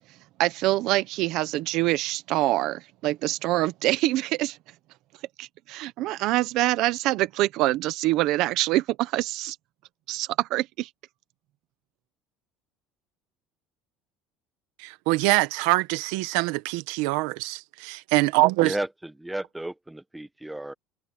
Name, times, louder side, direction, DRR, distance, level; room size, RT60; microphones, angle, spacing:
voice 1, 0.4-4.6 5.4-9.6 10.1-10.9, right 17 dB, 55° right, 0.9 m, -25 dB
voice 2, 14.8-18.7, right 21 dB, 85° right, 1.3 m, -24 dB
voice 3, 18.6-20.7, right 1 dB, 5° right, 1.5 m, -33 dB
cardioid pair, 170°, 0 cm